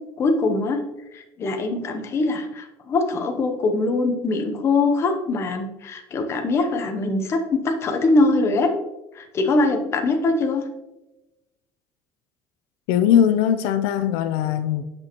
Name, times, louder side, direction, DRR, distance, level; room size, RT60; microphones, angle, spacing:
voice 1, 0.2-0.8 1.1-8.7 9.1-10.6, left 3 dB, 30° left, 5 dB, 0.7 m, -22 dB
voice 2, 12.9-14.8, left 9 dB, 80° left, 10 dB, 0.4 m, -20 dB
7.7 x 5.9 x 2.9 m, 1.0 s
cardioid pair, 160°, 9 cm